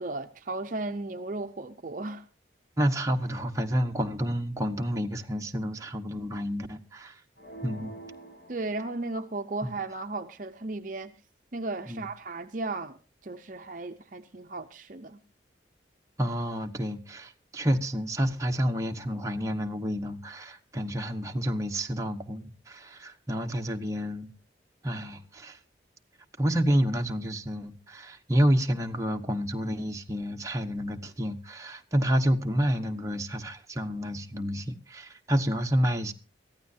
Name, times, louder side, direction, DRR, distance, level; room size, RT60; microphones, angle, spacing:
voice 1, 0.0-2.2 8.5-11.1 11.5-13.0 13.2-15.2, right 2 dB, 45° right, 0.6 m, -35 dB
voice 2, 2.8-7.2 7.6-7.9 9.6-9.7 11.9-12.1 16.2-24.3 24.8-25.6 26.4-36.1, equal, 15° right, 1.0 m, -29 dB
sound 1, 7.4-9.4, right 2 dB, 65° left, 8.0 m, -46 dB
23.0 x 15.0 x 2.7 m
head